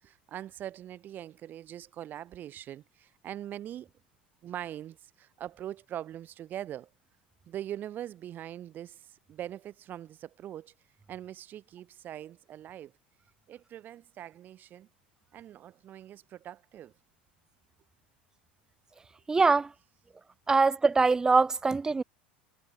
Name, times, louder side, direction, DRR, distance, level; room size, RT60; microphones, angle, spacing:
voice 1, 0.0-3.9 4.4-6.9 7.5-10.7 11.1-12.9 13.5-14.9 15.3-16.9, right 11 dB, 35° right, 4.1 m, -42 dB
voice 2, 19.3-19.7 20.5-22.0, right 4 dB, 10° right, 0.4 m, -23 dB
figure-of-eight pair, 80°, 5 cm